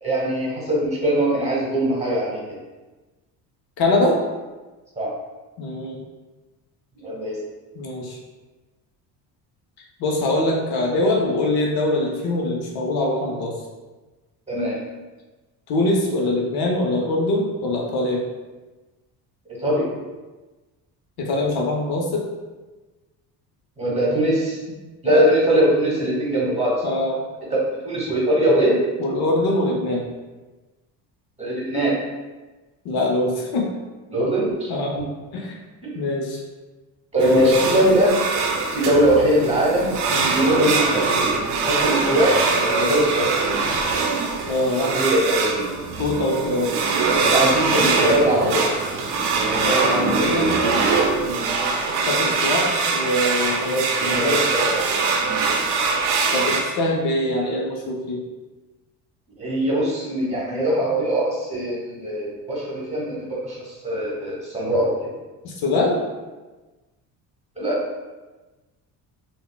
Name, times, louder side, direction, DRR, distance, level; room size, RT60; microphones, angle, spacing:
voice 1, 0.0-2.4 5.0-5.1 6.9-7.4 14.5-14.8 19.6-19.9 23.8-24.6 25.0-27.0 27.8-28.8 31.4-32.0 34.1-34.7 35.8-36.0 37.1-38.2 38.7-39.9 40.3-41.3 41.7-43.5 44.9-45.7 47.3-48.7 51.2-51.5 54.0-54.9 55.2-55.4 59.4-65.1 67.6-67.8, right 1 dB, 15° right, -4 dB, 1.1 m, -21 dB
voice 2, 3.8-4.2 5.6-6.0 7.7-8.2 10.0-13.5 15.7-18.2 21.2-22.3 25.1-25.2 26.8-27.2 29.0-30.1 32.8-33.7 34.7-35.0 35.3-35.6 35.9-36.4 37.2-37.7 40.1-40.4 44.5-44.9 46.0-46.7 48.2-48.4 49.6-50.5 52.0-54.4 56.3-58.2 65.4-66.1, left 2 dB, 60° left, -1 dB, 0.6 m, -23 dB
sound 1, 37.2-56.6, right 4 dB, 70° right, 0.6 m, -22 dB
3.5 x 2.1 x 2.2 m, 1.2 s
supercardioid pair, 85°, 43 cm